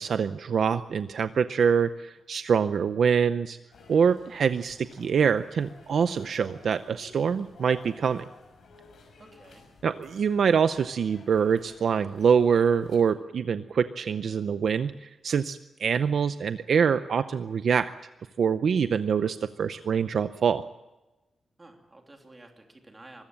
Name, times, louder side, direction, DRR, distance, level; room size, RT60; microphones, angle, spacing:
voice 1, 0.0-3.6 3.9-8.2 9.8-17.9 18.4-20.6, right 6 dB, 60° right, 11 dB, 0.6 m, -25 dB
sound 1, 3.7-13.0, left 3 dB, 75° left, 6.3 m, -54 dB
voice 2, 9.2-9.6 21.6-23.2, right 2 dB, 20° right, 3 dB, 3.0 m, -51 dB
24.5 x 14.5 x 8.8 m, 1.1 s
wide cardioid pair, 175°, 0 cm